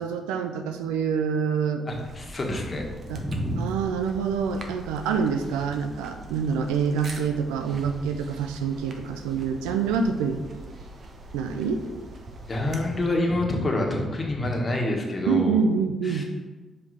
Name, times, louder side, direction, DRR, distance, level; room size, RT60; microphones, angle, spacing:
voice 1, 0.0-1.9 3.1-3.2 3.6-10.4 11.3-11.8 15.2-16.2, right 6 dB, 85° right, 6 dB, 0.3 m, -26 dB
voice 2, 1.9-3.6 12.5-15.6 16.0-16.2, left 1 dB, 35° left, 0 dB, 1.4 m, -27 dB
sound 1, 1.9-13.3, right 2 dB, 55° right, 0.9 m, -43 dB
5.3 x 4.7 x 4.1 m, 1.3 s
hypercardioid pair, 45°, 0 cm